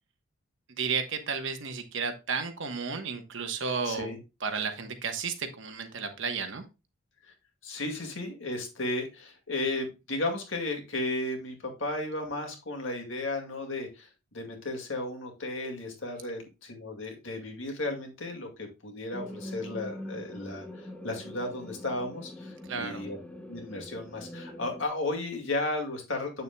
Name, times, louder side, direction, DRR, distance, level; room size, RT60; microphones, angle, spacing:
voice 1, 0.8-4.1 4.4-6.6 22.7-23.0, right 5 dB, 60° right, 7 dB, 1.1 m, -33 dB
voice 2, 3.8-4.2 7.2-7.3 7.6-23.2 23.5-26.4, left 2 dB, 65° left, 3 dB, 2.1 m, -34 dB
sound 1, 19.1-24.9, left 1 dB, 5° left, 0.8 m, -43 dB
8.1 x 6.9 x 2.3 m, 0.28 s
head